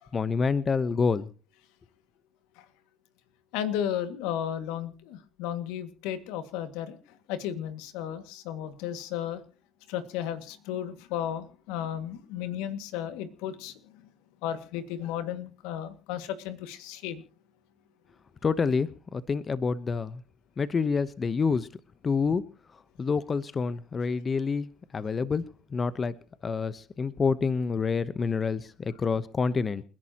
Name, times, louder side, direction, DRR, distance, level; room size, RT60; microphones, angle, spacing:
voice 1, 0.1-1.3 18.4-20.2 20.6-21.7 22.0-22.4 23.0-24.7 24.9-25.4 25.7-26.2 26.4-29.8, left 5 dB, 35° left, 15 dB, 0.9 m, -27 dB
voice 2, 3.5-9.4 9.9-14.0 14.4-17.2, left 10 dB, 85° left, 10 dB, 2.0 m, -34 dB
29.0 x 11.0 x 2.9 m, 0.35 s
supercardioid pair, 90°, 0 cm